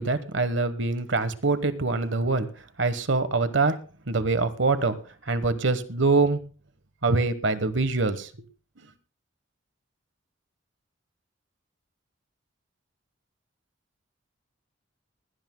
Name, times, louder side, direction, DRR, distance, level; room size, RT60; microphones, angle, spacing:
voice 1, 0.0-2.5 2.8-3.8 4.1-5.0 5.3-6.4 7.0-8.3, right 3 dB, 65° right, 12 dB, 1.2 m, -24 dB
20.0 x 17.0 x 2.2 m, 0.37 s
head